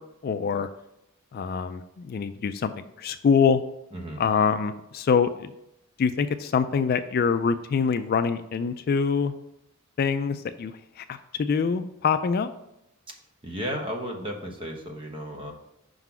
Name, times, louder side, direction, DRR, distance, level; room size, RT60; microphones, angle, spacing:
voice 1, 0.2-0.7 1.3-2.7 3.0-3.6 4.2-5.5 6.0-9.3 10.0-12.5, left 6 dB, 45° left, 10 dB, 0.3 m, -25 dB
voice 2, 3.9-4.2 13.4-15.5, equal, 25° right, 1 dB, 1.1 m, -34 dB
5.5 x 3.9 x 5.9 m, 0.84 s
head